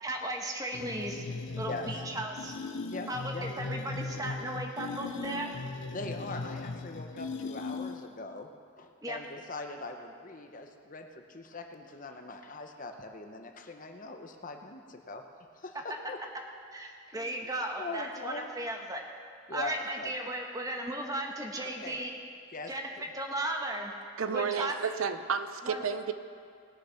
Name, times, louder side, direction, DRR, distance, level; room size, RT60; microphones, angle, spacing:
voice 1, 0.0-1.2 1.5-2.6 3.1-5.5 9.0-9.2 16.7-19.0 19.5-22.1 22.7-22.9 23.1-23.9 24.3-24.7 25.6-25.8, right 1 dB, 15° right, 2 dB, 1.1 m, -36 dB
sound 1, 0.7-8.2, left 3 dB, 60° left, 0.5 m, -38 dB
voice 2, 1.7-2.0 2.9-3.5 5.9-8.5 8.8-15.2 15.5-16.2 17.1-17.4 17.8-18.5 19.5-20.1 21.8-22.0 22.5-23.0, left 2 dB, 40° left, 5 dB, 0.8 m, -41 dB
voice 3, 24.2-26.1, right 6 dB, 80° right, 10 dB, 0.6 m, -31 dB
20.0 x 6.7 x 5.7 m, 2.3 s
head